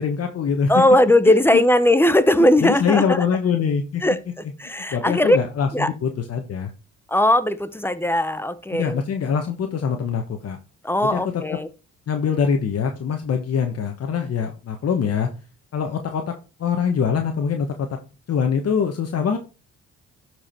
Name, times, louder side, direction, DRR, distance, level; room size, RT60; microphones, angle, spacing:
voice 1, 0.0-0.8 1.2-1.6 2.6-4.0 4.9-6.7 8.7-10.6 11.0-11.6 12.1-15.3 15.7-18.0 18.3-19.4, left 6 dB, 55° left, 1.2 m, -23 dB
voice 2, 0.7-3.2 4.0-5.4 5.7-5.9 7.1-9.0 10.8-11.7, left 1 dB, 5° left, 0.8 m, -18 dB
12.0 x 4.8 x 4.5 m
cardioid pair, 90°, 30 cm